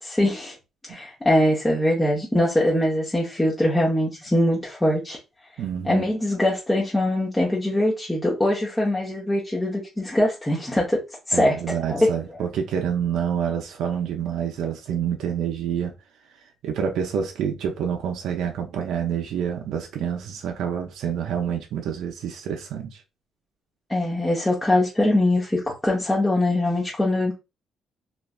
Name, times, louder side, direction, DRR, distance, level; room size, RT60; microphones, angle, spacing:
voice 1, 0.0-0.5 0.9-5.2 5.8-11.6 11.9-12.1 23.9-27.3, left 1 dB, 10° left, 0.9 m, -22 dB
voice 2, 5.6-6.0 11.3-15.9 16.6-23.0, right 8 dB, 75° right, 0.5 m, -27 dB
3.1 x 2.4 x 2.3 m
cardioid pair, 95°, 0 cm